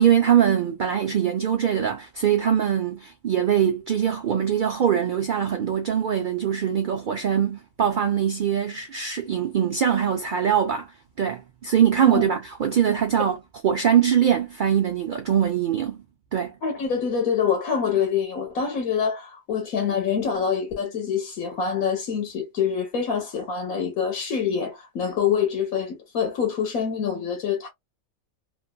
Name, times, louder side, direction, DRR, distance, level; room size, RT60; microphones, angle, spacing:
voice 1, 0.0-10.9 11.2-13.4 13.6-16.0 16.3-16.5, right 9 dB, 70° right, 0.4 m, -22 dB
voice 2, 16.6-27.7, left 7 dB, 90° left, 1.4 m, -25 dB
3.1 x 2.4 x 2.2 m
omnidirectional pair, 1.5 m